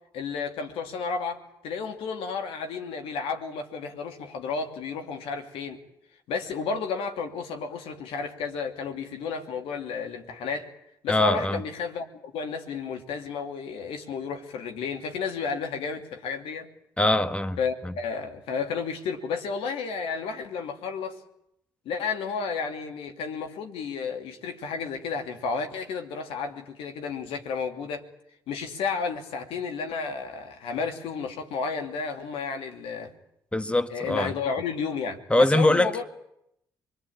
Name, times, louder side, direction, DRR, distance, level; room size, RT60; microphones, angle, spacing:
voice 1, 0.1-5.8 6.3-10.7 11.0-16.7 17.6-21.2 21.8-28.0 28.5-33.1 33.9-36.0, left 5 dB, 70° left, 2.8 m, -32 dB
voice 2, 11.1-11.6 17.0-17.6 17.8-17.9 33.5-34.3 35.3-35.9, left 1 dB, 10° left, 1.5 m, -22 dB
26.0 x 21.5 x 8.8 m
hypercardioid pair, 50°, 10 cm